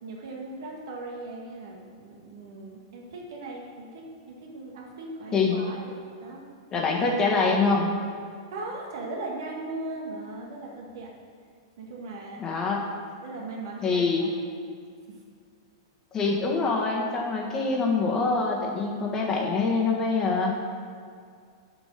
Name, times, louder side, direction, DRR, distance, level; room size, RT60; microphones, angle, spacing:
voice 1, 0.0-5.9 6.2-6.5 8.5-11.1 11.8-12.6 13.2-14.3 15.1-15.2, right 2 dB, 60° right, -1 dB, 1.8 m, -38 dB
voice 2, 6.7-7.9 12.4-12.8 13.8-14.2 16.1-20.5, left 4 dB, 25° left, -1 dB, 1.6 m, -25 dB
6.7 x 6.1 x 6.6 m, 2.1 s
figure-of-eight pair, 100°, 2 cm